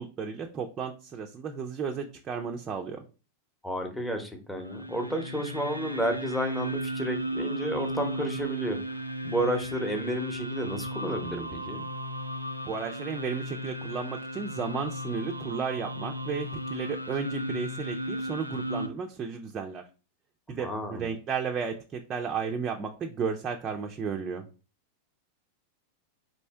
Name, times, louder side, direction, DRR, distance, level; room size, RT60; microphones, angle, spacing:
voice 1, 0.0-3.0 12.6-19.8 20.5-24.4, right 6 dB, 25° right, 2 dB, 0.5 m, -33 dB
voice 2, 3.6-8.8 9.2-11.8 20.5-21.1, equal, 5° left, 4 dB, 0.9 m, -31 dB
sound 1, 4.6-18.9, equal, 90° left, 0.3 m, -35 dB
4.2 x 2.7 x 3.3 m, 0.34 s
figure-of-eight pair, 90°, 0 cm